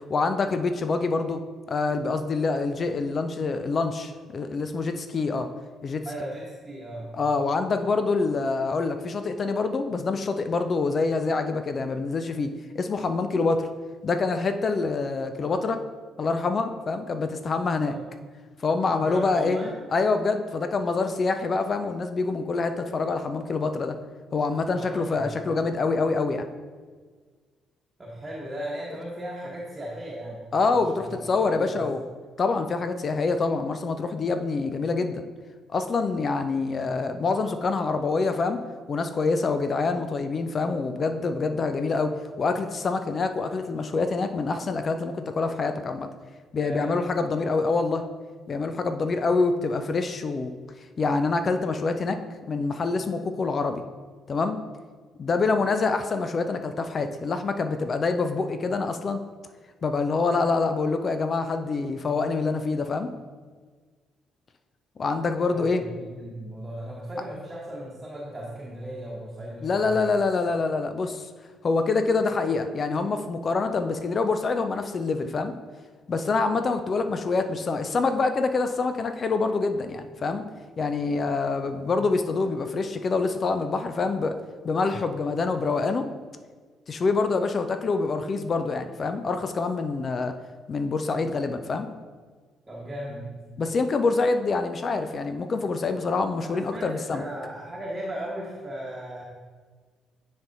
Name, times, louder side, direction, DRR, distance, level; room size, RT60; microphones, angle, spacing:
voice 1, 0.1-1.4 1.7-5.5 5.8-6.0 7.1-12.5 12.7-13.7 14.0-15.8 16.2-18.0 18.6-24.0 24.3-26.5 30.5-32.0 32.4-35.2 35.7-38.6 38.9-46.1 46.5-48.0 48.5-50.5 51.0-53.8 54.3-54.6 55.2-59.2 59.8-63.1 65.0-65.8 69.6-71.3 71.6-75.5 76.1-80.4 80.8-84.4 84.6-86.1 86.9-90.3 90.7-91.9 93.6-97.2, left 4 dB, 40° left, 8 dB, 0.4 m, -26 dB
voice 2, 6.0-7.2 17.8-18.0 19.0-19.8 24.7-25.3 28.0-31.9 46.6-47.0 65.5-70.1 92.6-93.3 96.4-99.2, right 1 dB, 20° right, -5 dB, 1.2 m, -37 dB
10.0 x 4.1 x 2.6 m, 1.5 s
figure-of-eight pair, 45°, 0 cm